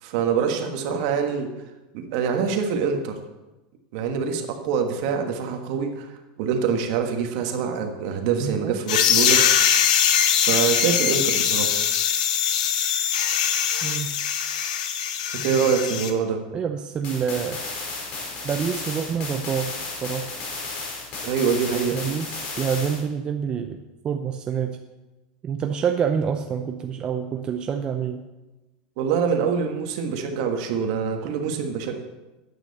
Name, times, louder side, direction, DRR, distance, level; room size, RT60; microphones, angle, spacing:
voice 1, 0.0-1.5 1.9-3.2 3.9-6.1 6.4-9.4 10.3-11.8 15.3-16.4 21.2-22.0 29.0-32.0, right 6 dB, 55° right, 5 dB, 1.7 m, -25 dB
voice 2, 8.4-8.8 13.8-14.1 16.5-17.6 18.4-20.3 21.9-24.8 25.4-28.2, right 7 dB, 20° right, 6 dB, 0.5 m, -27 dB
sound 1, 8.9-16.1, left 8 dB, 85° left, 1.2 m, -22 dB
sound 2, 17.0-23.0, left 3 dB, 45° left, 3.7 m, -33 dB
13.5 x 9.1 x 4.2 m, 1.1 s
supercardioid pair, 160°, 4 cm